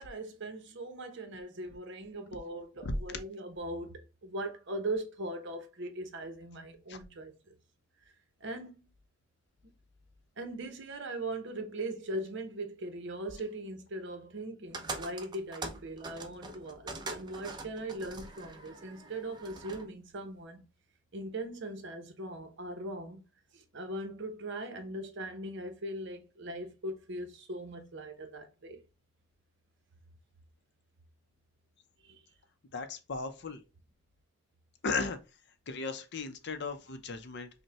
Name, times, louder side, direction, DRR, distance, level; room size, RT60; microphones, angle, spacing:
voice 1, 0.0-7.5 8.4-8.8 9.6-9.7 10.4-20.6 21.1-23.2 23.5-28.8 32.0-32.3, right 1 dB, 60° right, 0.8 m, -40 dB
sound 1, 14.7-19.9, right 3 dB, 20° right, 0.5 m, -43 dB
voice 2, 32.7-33.6 34.8-35.2 35.7-37.5, left 4 dB, 55° left, 0.6 m, -36 dB
5.2 x 2.2 x 2.8 m
head